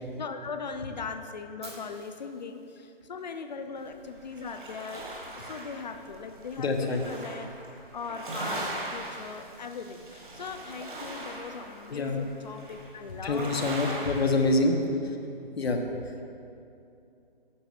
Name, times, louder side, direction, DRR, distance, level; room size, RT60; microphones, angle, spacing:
voice 1, 0.2-5.0 5.4-7.5 7.9-13.5 13.8-14.1 14.4-14.5, left 5 dB, 45° left, 8 dB, 0.5 m, -39 dB
Fire, 1.6-3.7, right 3 dB, 25° right, 1.1 m, -50 dB
sound 1, 3.8-14.6, right 2 dB, 55° right, 1.9 m, -40 dB
voice 2, 6.6-7.0 11.9-12.2 13.2-14.7 15.0-15.2 15.6-16.2, left 2 dB, 90° left, 3 dB, 1.1 m, -26 dB
8.8 x 5.2 x 5.0 m, 2.6 s
hypercardioid pair, 170°, 30 cm